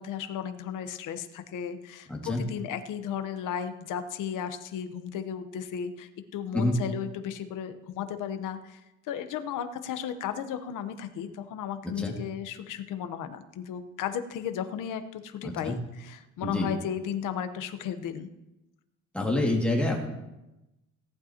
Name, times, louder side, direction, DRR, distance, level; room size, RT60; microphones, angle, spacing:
voice 1, 0.0-8.8 9.1-18.3, left 8 dB, 80° left, 9 dB, 1.0 m, -35 dB
voice 2, 2.1-2.4 6.5-6.8 12.0-12.1 15.4-15.7 16.4-16.7 19.1-20.0, left 1 dB, 5° left, -2 dB, 2.2 m, -27 dB
18.0 x 11.5 x 2.9 m, 0.96 s
cardioid pair, 145°, 31 cm